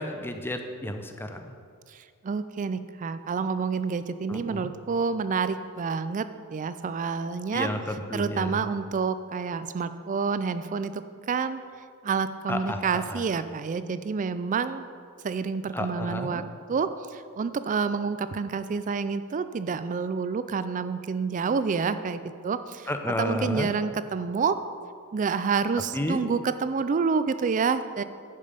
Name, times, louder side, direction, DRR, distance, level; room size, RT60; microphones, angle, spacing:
voice 1, 0.0-1.5 4.3-4.7 7.5-8.7 12.5-13.2 15.7-16.4 22.9-23.7 25.9-26.2, left 1 dB, 10° left, 6 dB, 0.6 m, -31 dB
voice 2, 1.9-7.7 8.1-11.6 12.0-14.8 15.2-16.4 16.7-22.9 23.2-24.6 25.1-28.0, right 5 dB, 35° right, 12 dB, 0.4 m, -28 dB
11.0 x 5.4 x 5.1 m, 2.2 s
head